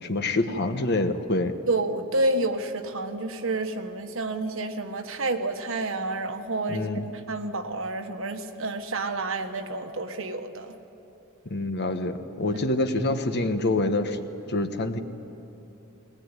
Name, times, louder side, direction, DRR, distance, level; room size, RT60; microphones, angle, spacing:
voice 1, 0.0-1.5 6.7-7.0 11.5-14.2 14.5-15.0, left 2 dB, 50° left, 8 dB, 1.2 m, -26 dB
voice 2, 1.7-6.8 7.3-10.8, right 2 dB, 65° right, 6 dB, 1.5 m, -29 dB
21.5 x 19.0 x 9.8 m, 3.0 s
head